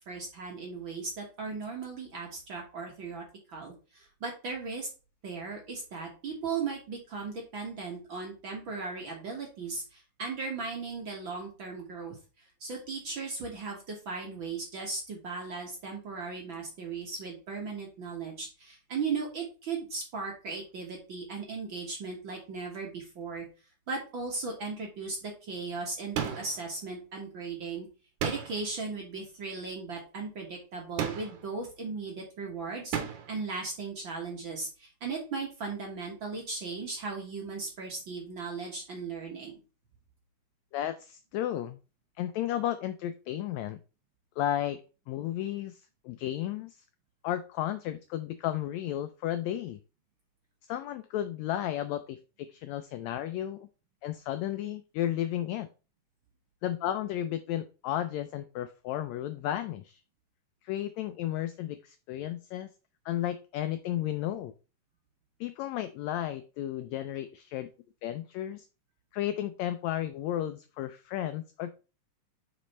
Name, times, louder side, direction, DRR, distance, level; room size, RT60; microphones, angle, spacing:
voice 1, 0.1-4.9 5.2-23.5 23.9-27.9 28.2-33.0 33.3-39.6, right 4 dB, 50° right, 0 dB, 1.6 m, -37 dB
sound 1, 26.1-26.7 28.2-28.7 31.0-31.5 32.9-33.4, right 8 dB, 70° right, 2.2 m, -34 dB
voice 2, 40.7-41.8 42.2-43.8 44.4-44.8 45.1-46.8 47.2-49.8 50.6-53.7 54.0-55.7 56.6-60.0 60.6-62.7 63.0-64.5 65.4-67.7 68.0-68.7 69.1-71.7, left 12 dB, 85° left, 10 dB, 1.6 m, -33 dB
5.3 x 5.1 x 4.2 m, 0.32 s
omnidirectional pair, 3.7 m